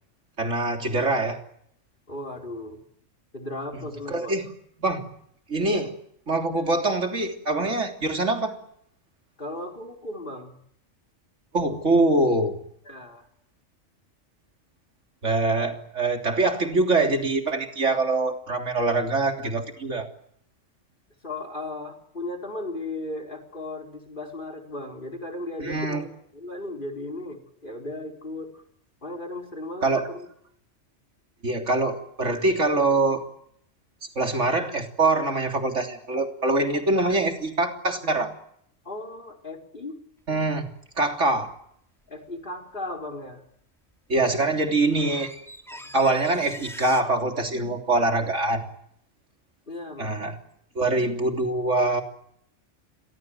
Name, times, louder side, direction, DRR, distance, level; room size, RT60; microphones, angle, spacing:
voice 1, 0.4-1.4 4.1-4.5 4.8-5.1 5.5-5.9 6.3-8.6 11.5-12.6 15.2-20.1 25.6-26.0 29.8-30.1 31.4-33.2 34.2-38.3 40.3-40.7 41.0-41.5 44.1-45.3 45.9-48.7 50.0-50.4 50.8-52.0, right 2 dB, 75° right, 4 dB, 3.6 m, -24 dB
voice 2, 2.1-2.8 3.3-4.4 5.7-5.9 9.4-10.6 12.8-13.3 21.2-28.6 29.0-30.3 36.6-36.8 38.8-40.0 42.1-43.4 45.1-45.2 45.7-45.9 49.7-50.2, left 2 dB, 45° left, 8 dB, 4.5 m, -36 dB
sound 1, 40.4-40.6 44.2-44.3 44.6-47.0, equal, ahead, 2.8 m, -42 dB
29.0 x 23.5 x 7.9 m, 0.71 s
omnidirectional pair, 1.3 m